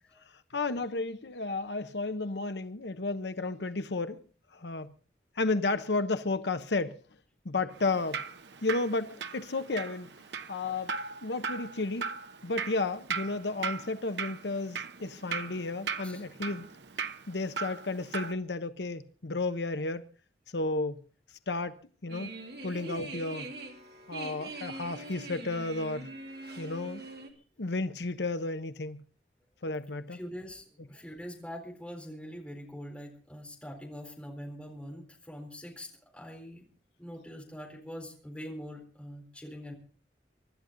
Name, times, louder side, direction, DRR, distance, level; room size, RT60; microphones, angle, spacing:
voice 1, 0.5-4.2 4.5-4.9 5.4-7.0 7.4-8.2 8.6-10.1 10.5-10.9 11.2-12.1 12.4-16.7 17.3-20.0 20.5-21.0 21.5-22.3 22.6-23.5 24.1-26.1 26.6-27.0 27.6-29.0 29.6-30.2, left 3 dB, 80° left, 0.9 m, -32 dB
Drip, 7.7-18.3, right 5 dB, 85° right, 1.0 m, -39 dB
sound 1, 22.1-27.3, right 2 dB, 60° right, 3.0 m, -42 dB
voice 2, 30.1-36.7 37.0-39.7, equal, 5° left, 4.1 m, -43 dB
25.0 x 11.5 x 3.9 m
head